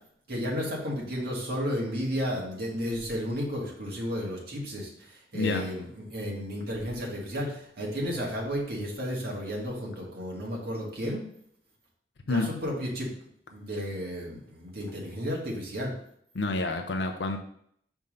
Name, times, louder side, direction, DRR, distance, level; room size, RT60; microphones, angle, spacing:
voice 1, 0.3-11.2 12.2-13.1 13.5-15.9, equal, 60° right, -3 dB, 1.9 m, -33 dB
voice 2, 5.3-5.7 12.3-12.5 16.3-17.4, left 2 dB, 70° left, 4 dB, 0.6 m, -28 dB
5.5 x 3.6 x 5.2 m, 0.68 s
head